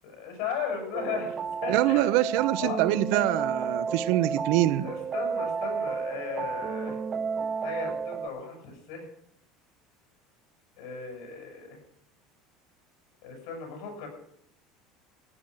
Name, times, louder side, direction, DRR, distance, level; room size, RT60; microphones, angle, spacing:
voice 1, 0.0-1.4 1.6-2.1 2.6-2.8 4.8-7.0 7.6-9.1 10.8-11.8 13.2-14.1, left 6 dB, 75° left, 7.6 m, -36 dB
sound 1, 0.9-8.3, right 6 dB, 25° right, 0.6 m, -32 dB
voice 2, 1.7-4.9, right 15 dB, 65° right, 0.8 m, -25 dB
15.0 x 10.0 x 6.3 m
cardioid pair, 155°, 0 cm